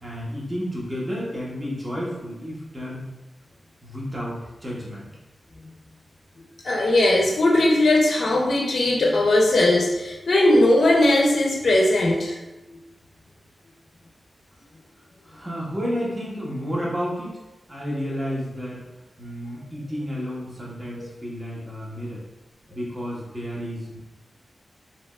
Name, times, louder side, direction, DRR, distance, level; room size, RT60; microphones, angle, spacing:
voice 1, 0.0-3.1 3.8-5.1 15.2-17.4 17.7-18.8 19.2-22.2 22.7-24.0, equal, 25° right, -5 dB, 1.1 m, -31 dB
voice 2, 6.6-12.4, left 1 dB, 65° left, -1 dB, 0.5 m, -19 dB
3.3 x 2.7 x 2.3 m, 1.0 s
wide cardioid pair, 75°, 0 cm